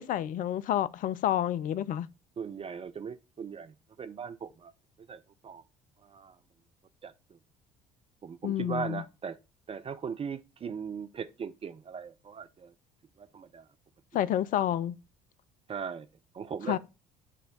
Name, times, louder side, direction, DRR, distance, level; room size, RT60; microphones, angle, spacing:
voice 1, 0.0-2.1 8.4-9.0 14.1-15.0 16.7-16.8, left 11 dB, 45° left, 0.4 m, -29 dB
voice 2, 2.4-4.7 5.1-5.6 6.0-6.4 7.0-7.1 8.2-9.4 9.7-12.7 13.2-13.7 15.7-16.1 16.3-16.8, right 6 dB, 30° right, 0.5 m, -39 dB
9.9 x 3.3 x 3.8 m
figure-of-eight pair, 55°, 20 cm